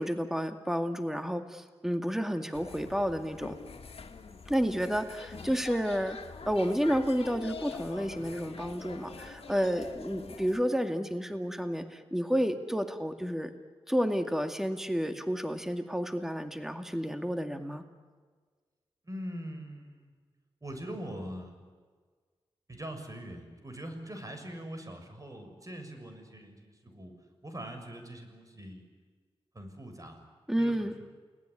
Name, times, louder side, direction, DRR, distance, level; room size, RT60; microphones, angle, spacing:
voice 1, 0.0-3.6 4.5-6.2 6.5-13.5 13.9-17.8 30.5-31.0, equal, 5° right, 7 dB, 2.2 m, -31 dB
sound 1, 2.5-10.6, left 5 dB, 70° left, 2.2 m, -45 dB
voice 2, 19.0-20.1 20.6-21.5 22.7-27.1 27.4-28.8 29.5-30.2 30.6-30.9, equal, 35° right, 5 dB, 7.0 m, -42 dB
29.0 x 19.5 x 9.9 m, 1.5 s
cardioid pair, 45°, 10 cm